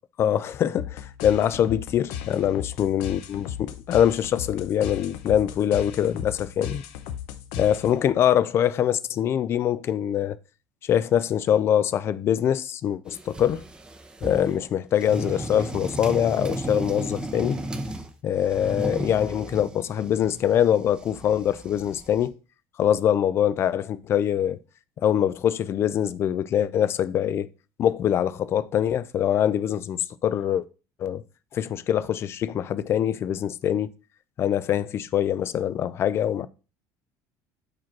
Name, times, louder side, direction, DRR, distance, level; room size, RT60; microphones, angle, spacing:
voice 1, 0.2-6.8 7.6-10.4 10.8-13.6 14.2-17.6 18.2-22.3 22.8-24.6 25.0-27.5 27.8-30.6 31.0-31.2 31.5-33.9 34.4-36.5, left 10 dB, 35° left, 0.4 m, -24 dB
sound 1, 0.7-8.2, left 10 dB, 85° left, 0.8 m, -36 dB
sound 2, 13.1-14.6 15.0-18.1 18.4-22.3, right 1 dB, 10° right, 0.7 m, -35 dB
4.9 x 4.6 x 5.8 m
cardioid pair, 150°, 7 cm